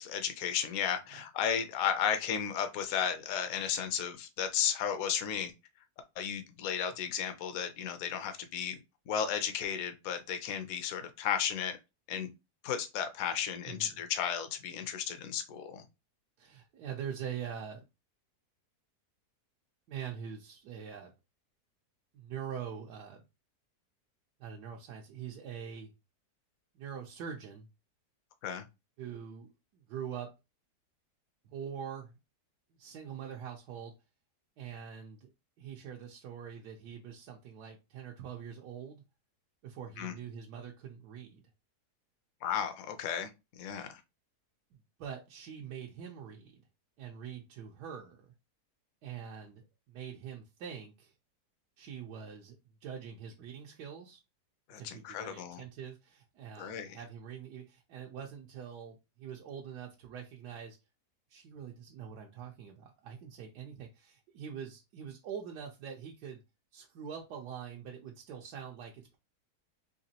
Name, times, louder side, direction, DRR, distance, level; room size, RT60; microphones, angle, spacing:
voice 1, 0.0-5.5 6.2-8.8 9.1-11.8 12.1-12.3 12.6-15.8 28.4-28.7 40.0-40.1 42.4-43.3 43.6-44.0 54.7-55.6 56.6-57.0, left 8 dB, 65° left, 1.0 m, -34 dB
voice 2, 13.6-14.0 16.4-17.8 19.9-21.1 22.1-23.2 24.4-25.9 26.7-27.7 29.0-30.3 31.4-32.2 32.8-33.9 34.6-35.3 35.6-39.0 39.6-41.4 44.7-46.6 47.0-48.3 49.0-51.1 51.8-54.2 54.8-60.8 61.3-66.4 66.7-69.2, right 8 dB, 90° right, 1.3 m, -44 dB
4.0 x 2.9 x 2.8 m
omnidirectional pair, 1.7 m